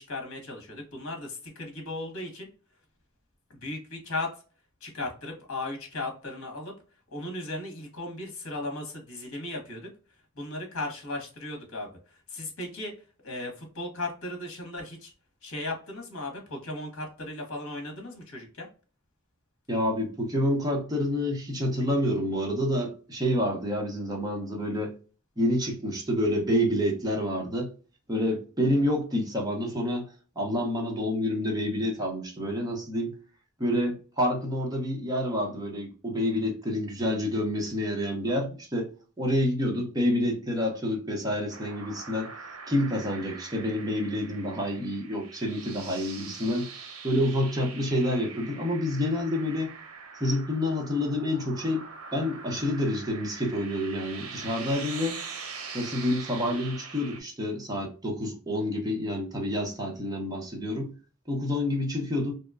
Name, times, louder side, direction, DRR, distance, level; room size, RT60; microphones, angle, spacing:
voice 1, 0.0-2.5 3.6-4.3 4.8-6.7 7.1-9.9 10.4-11.9 12.3-12.9 13.2-15.1 15.4-18.7, left 2 dB, 65° left, 1.0 m, -36 dB
voice 2, 19.7-24.9 25.4-27.7 28.1-30.1 30.4-33.1 33.6-38.9 39.2-42.3 42.7-49.7 50.2-51.8 52.1-55.2 55.7-60.9 61.3-62.3, left 1 dB, 20° right, 0.8 m, -28 dB
sound 1, 41.5-57.2, right 5 dB, 80° right, 0.7 m, -43 dB
2.8 x 2.2 x 2.2 m
head